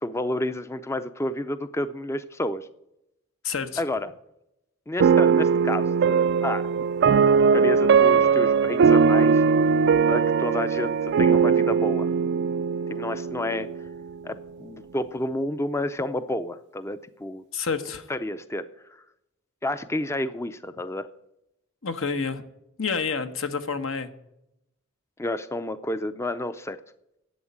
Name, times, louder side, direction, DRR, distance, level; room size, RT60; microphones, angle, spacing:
voice 1, 0.0-2.7 3.8-4.1 4.9-6.7 7.5-9.5 10.1-12.1 12.9-13.7 14.2-17.4 18.1-19.0 19.6-21.1 25.2-26.8, left 1 dB, 15° left, 12 dB, 0.5 m, -30 dB
voice 2, 3.4-3.8 17.5-18.1 21.8-22.4 22.8-24.1, left 5 dB, 75° left, 8 dB, 1.2 m, -29 dB
sound 1, 5.0-14.2, right 6 dB, 55° right, 0.3 m, -20 dB
11.0 x 8.0 x 8.6 m, 0.84 s
head